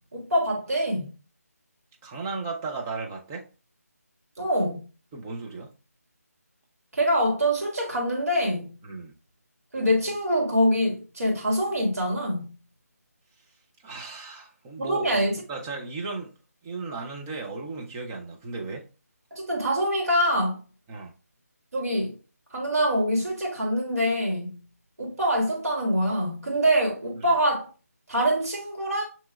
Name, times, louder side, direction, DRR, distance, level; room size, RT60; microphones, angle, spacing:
voice 1, 0.1-1.1 4.4-4.8 6.9-8.7 9.7-12.5 14.8-15.4 19.3-20.6 21.7-22.2 22.5-24.5 25.0-27.7 28.1-29.1, equal, 65° right, 1.9 m, -25 dB
voice 2, 2.0-3.5 5.1-5.7 8.8-9.1 13.8-15.2 15.5-16.3 16.6-18.9 20.9-21.1 27.2-27.3, right 3 dB, 10° right, 0.4 m, -35 dB
7.5 x 2.9 x 2.3 m
figure-of-eight pair, 160°, 9 cm